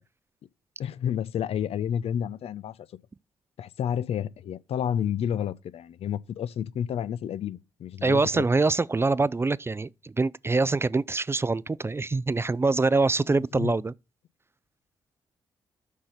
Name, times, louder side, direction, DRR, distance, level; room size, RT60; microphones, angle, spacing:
voice 1, 0.8-2.8 3.6-8.5 13.5-13.7, left 9 dB, 65° left, 0.5 m, -30 dB
voice 2, 8.0-13.9, right 3 dB, 20° right, 0.4 m, -24 dB
6.5 x 5.7 x 6.6 m
hypercardioid pair, 45°, 11 cm